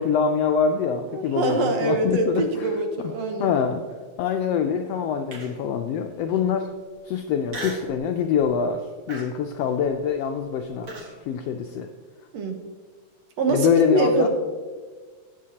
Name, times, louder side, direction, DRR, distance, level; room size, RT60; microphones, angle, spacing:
voice 1, 0.0-2.7 3.0-3.1 3.4-3.8 4.2-6.7 7.0-10.9 11.2-11.9 13.5-14.3, left 7 dB, 80° left, 5 dB, 1.4 m, -24 dB
voice 2, 1.1-3.5 12.3-12.6 13.4-14.3, right 2 dB, 70° right, 4 dB, 2.1 m, -24 dB
Human voice, 5.3-5.7 6.3-6.4 7.5-8.0 8.4-8.7 9.1-11.1, right 1 dB, 45° right, 1.1 m, -37 dB
16.0 x 7.1 x 2.8 m, 1.5 s
omnidirectional pair, 3.3 m